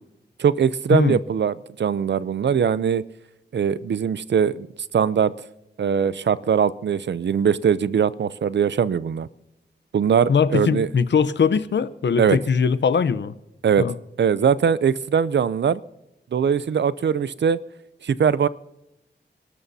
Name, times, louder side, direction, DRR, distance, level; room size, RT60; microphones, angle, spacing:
voice 1, 0.4-3.0 3.5-4.7 4.9-5.3 5.8-9.3 9.9-10.9 12.2-12.4 13.6-13.8 14.2-15.8 16.3-17.6 18.0-18.5, right 7 dB, 70° right, 17 dB, 0.6 m, -21 dB
voice 2, 10.3-13.3 13.8-13.9, left 6 dB, 75° left, 14 dB, 0.8 m, -21 dB
27.5 x 12.5 x 2.8 m, 0.90 s
wide cardioid pair, 90°, 19 cm